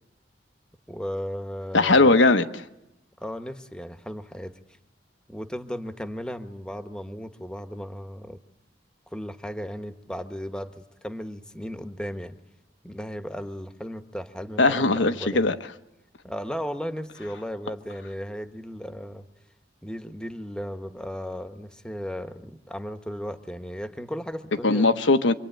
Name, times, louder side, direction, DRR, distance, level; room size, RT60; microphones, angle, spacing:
voice 1, 0.9-2.1 3.2-4.6 5.3-8.4 9.1-12.4 12.8-15.5 16.2-19.2 19.8-24.9, equal, 5° left, 1.1 m, -35 dB
voice 2, 1.7-2.6 14.6-15.5 24.6-25.3, left 3 dB, 85° left, 1.2 m, -19 dB
26.5 x 24.5 x 9.1 m
head